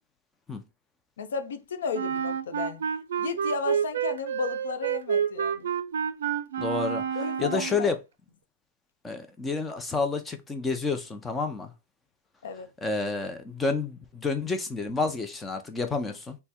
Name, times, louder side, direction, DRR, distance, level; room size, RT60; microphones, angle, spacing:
voice 1, 1.2-2.8 3.2-5.7 7.1-7.9 12.4-12.7, left 5 dB, 90° left, 0.7 m, -33 dB
Wind instrument woodwind instrument, 1.9-7.9, right 8 dB, 80° right, 0.4 m, -29 dB
voice 2, 6.6-7.0 7.4-8.0 9.0-11.7 12.8-16.4, left 4 dB, 5° left, 0.4 m, -29 dB
3.4 x 2.1 x 4.2 m
supercardioid pair, 180°, 0 cm